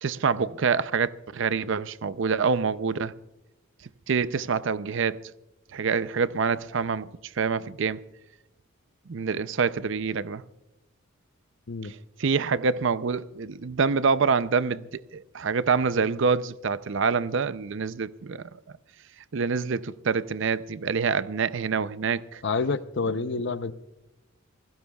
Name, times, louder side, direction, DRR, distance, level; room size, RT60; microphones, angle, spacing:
voice 1, 0.0-3.1 4.1-5.2 5.7-7.1 7.4-8.0 9.1-10.4 11.8-18.5 19.3-22.4, right 5 dB, 60° right, 0.5 m, -26 dB
voice 2, 22.4-23.7, left 4 dB, 60° left, 0.7 m, -28 dB
28.0 x 16.5 x 2.3 m
head